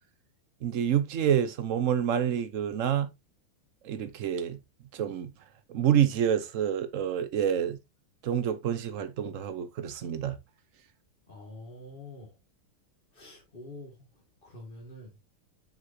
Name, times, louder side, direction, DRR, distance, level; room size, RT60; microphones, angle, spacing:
voice 1, 0.6-3.1 3.8-4.6 4.9-5.3 5.7-7.8 8.2-10.4, right 9 dB, 75° right, 0.7 m, -27 dB
voice 2, 11.3-12.3 13.1-13.9 14.4-15.1, left 2 dB, 25° left, 2.0 m, -46 dB
7.3 x 6.2 x 2.7 m
omnidirectional pair, 2.4 m